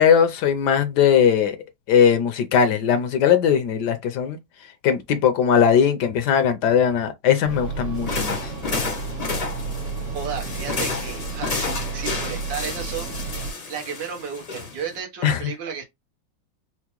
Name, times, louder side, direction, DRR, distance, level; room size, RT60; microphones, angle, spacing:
voice 1, 0.0-1.6 1.9-4.4 4.8-8.5 15.2-15.4, left 8 dB, 70° left, 1.1 m, -19 dB
sound 1, 7.4-13.5, right 4 dB, 60° right, 1.7 m, -32 dB
sound 2, 8.0-15.0, left 4 dB, 45° left, 0.4 m, -31 dB
voice 2, 10.1-13.1 13.7-15.8, right 7 dB, 80° right, 1.8 m, -33 dB
4.5 x 2.1 x 2.9 m
omnidirectional pair, 2.0 m